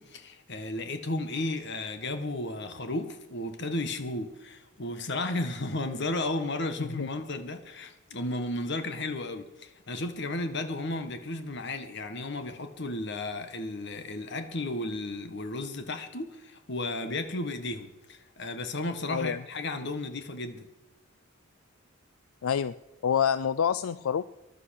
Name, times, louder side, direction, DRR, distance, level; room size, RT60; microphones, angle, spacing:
voice 1, 0.0-20.7, left 2 dB, 55° left, 1.5 m, -34 dB
voice 2, 19.1-19.4 22.4-22.7 23.0-24.2, left 7 dB, 85° left, 0.4 m, -27 dB
16.0 x 11.5 x 6.5 m
head